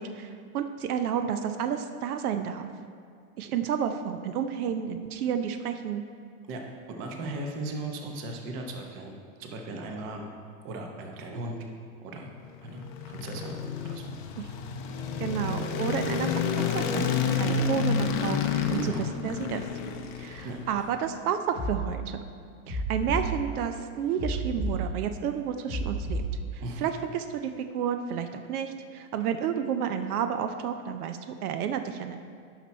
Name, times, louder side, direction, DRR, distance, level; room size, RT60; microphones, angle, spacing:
voice 1, 0.0-2.7 3.4-6.0 14.4-14.5 15.2-19.6 20.2-22.2 22.7-26.2 26.5-32.2, right 8 dB, 80° right, 8 dB, 0.7 m, -31 dB
voice 2, 7.0-10.3 10.6-11.6 12.0-12.3 12.6-13.6 13.8-14.2 18.7-19.1 20.4-20.8 26.6-26.9, right 2 dB, 30° right, 2 dB, 0.8 m, -37 dB
sound 1, 12.5-20.9, left 6 dB, 35° left, 0.5 m, -30 dB
sound 2, 21.5-21.8 22.7-23.3 24.2-24.8 25.7-26.3, equal, 10° right, 1.3 m, -30 dB
9.8 x 6.0 x 4.1 m, 2.2 s
supercardioid pair, 155°, 44 cm